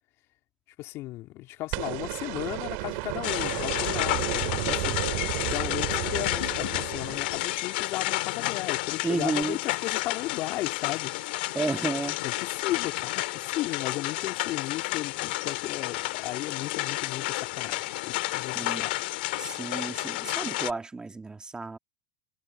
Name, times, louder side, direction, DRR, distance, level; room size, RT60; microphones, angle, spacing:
voice 1, 0.8-5.0 5.4-11.1 12.2-19.0, left 17 dB, 55° left, 3.0 m, -35 dB
sound 1, 1.7-7.9 9.4-9.5, right 27 dB, 70° right, 2.1 m, -33 dB
sound 2, 3.2-20.7, left 20 dB, 75° left, 2.0 m, -31 dB
voice 2, 9.0-9.6 11.5-12.2 18.5-18.9 19.4-21.8, right 3 dB, 15° right, 1.9 m, -31 dB
hypercardioid pair, 100°, 5 cm